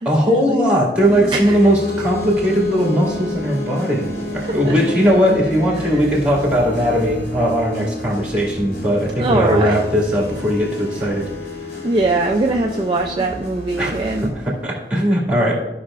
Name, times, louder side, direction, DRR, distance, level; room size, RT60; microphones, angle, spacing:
voice 1, 0.1-11.2 13.8-13.9 14.2-15.5, equal, 5° right, -3 dB, 2.2 m, -18 dB
sound 1, 1.0-14.3, left 1 dB, 65° left, 2.4 m, -30 dB
voice 2, 9.2-9.8 11.8-14.3, right 2 dB, 25° right, 1 dB, 0.4 m, -21 dB
14.5 x 5.6 x 2.5 m, 1.0 s
head